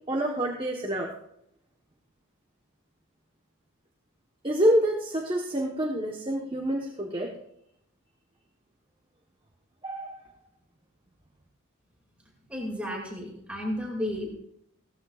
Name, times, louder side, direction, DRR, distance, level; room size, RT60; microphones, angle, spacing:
voice 1, 0.1-1.1 4.4-7.3 9.8-10.2, equal, 25° right, -1 dB, 1.1 m, -27 dB
voice 2, 12.5-14.4, left 1 dB, 5° right, -1 dB, 2.3 m, -33 dB
17.0 x 14.0 x 2.4 m, 0.74 s
head